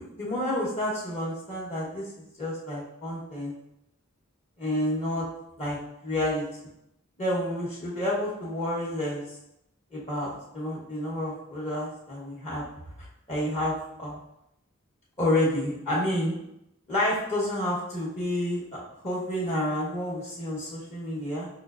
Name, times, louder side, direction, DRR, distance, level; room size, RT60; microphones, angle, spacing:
voice 1, 0.0-3.5 4.6-5.2 5.6-5.8 6.0-6.5 7.2-9.2 9.9-12.6 13.3-14.2 15.2-16.3 16.9-21.5, left 1 dB, 30° left, -6 dB, 0.9 m, -29 dB
5.6 x 2.4 x 2.4 m, 0.81 s
head